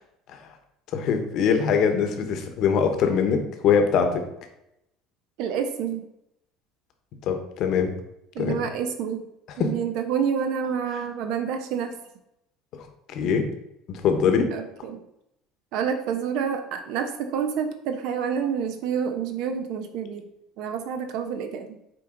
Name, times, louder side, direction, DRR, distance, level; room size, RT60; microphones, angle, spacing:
voice 1, 0.9-4.2 7.3-7.9 8.4-8.6 9.6-9.7 12.7-12.8 13.1-13.5 13.9-14.5, left 6 dB, 45° left, 5 dB, 1.0 m, -22 dB
voice 2, 5.4-6.0 8.3-9.2 9.6-12.0 14.5-15.0 15.7-20.3 20.6-21.8, right 7 dB, 55° right, 7 dB, 0.9 m, -28 dB
7.5 x 4.7 x 3.8 m, 0.82 s
cardioid pair, 175°, 0 cm